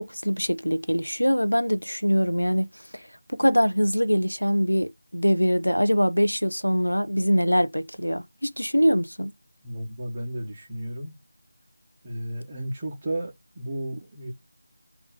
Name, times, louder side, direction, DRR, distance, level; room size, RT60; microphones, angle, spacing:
voice 1, 0.0-9.3, equal, 85° left, 0.7 m, -23 dB
voice 2, 9.6-11.1 12.0-14.3, right 1 dB, 20° right, 1.6 m, -33 dB
3.5 x 2.9 x 3.9 m
figure-of-eight pair, 165°, 0 cm